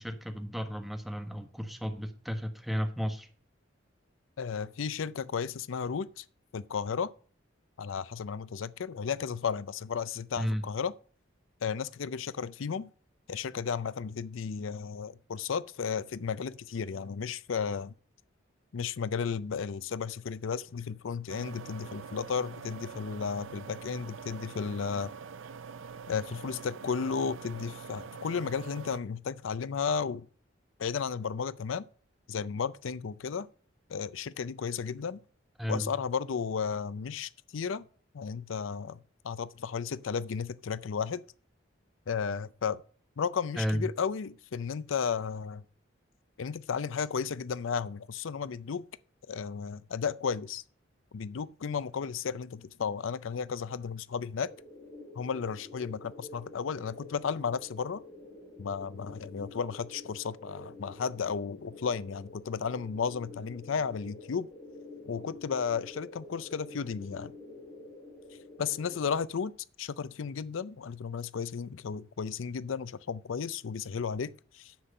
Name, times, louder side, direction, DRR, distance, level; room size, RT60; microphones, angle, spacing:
voice 1, 0.0-3.3 10.4-10.6 35.6-35.9 43.6-43.9, equal, ahead, 1.3 m, -33 dB
voice 2, 4.4-6.2 6.5-7.1 7.8-10.9 11.6-12.9 13.3-17.9 18.7-25.1 26.1-30.3 30.8-31.8 32.3-33.5 33.9-35.2 35.7-37.8 38.1-39.0 39.2-41.2 42.1-42.8 43.2-45.6 46.4-48.8 49.3-50.6 51.1-54.5 55.2-58.0 58.6-64.5 65.1-67.3 68.6-69.5 69.8-74.7, left 6 dB, 85° left, 0.5 m, -34 dB
sound 1, 21.3-29.0, right 6 dB, 80° right, 0.5 m, -45 dB
sound 2, 54.4-69.1, left 2 dB, 25° left, 3.2 m, -49 dB
10.0 x 7.6 x 5.4 m
head